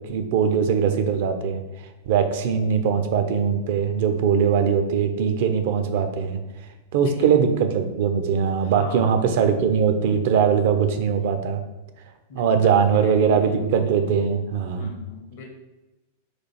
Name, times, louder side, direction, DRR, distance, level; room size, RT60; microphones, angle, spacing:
voice 1, 0.0-1.6 2.1-6.4 6.9-11.6 12.3-14.9, right 7 dB, 50° right, 7 dB, 0.5 m, -21 dB
voice 2, 7.0-7.3 8.6-9.5 12.3-13.7 14.7-15.5, left 4 dB, 50° left, 1 dB, 0.7 m, -40 dB
4.2 x 2.4 x 4.5 m, 1.1 s
figure-of-eight pair, 90°, 0 cm